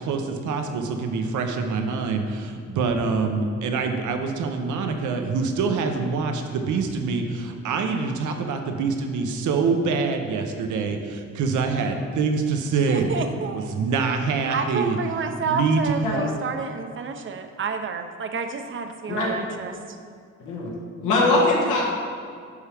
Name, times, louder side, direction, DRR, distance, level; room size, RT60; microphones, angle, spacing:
voice 1, 0.0-13.2 13.5-15.0 15.4-16.2, right 4 dB, 75° right, 5 dB, 0.9 m, -25 dB
voice 2, 12.9-13.7 14.5-19.7, right 5 dB, 40° right, 6 dB, 0.7 m, -29 dB
voice 3, 19.1-19.4 20.5-20.7 21.0-21.9, left 2 dB, 90° left, -4 dB, 1.8 m, -21 dB
9.6 x 5.5 x 3.4 m, 2.2 s
cardioid pair, 90°, 30 cm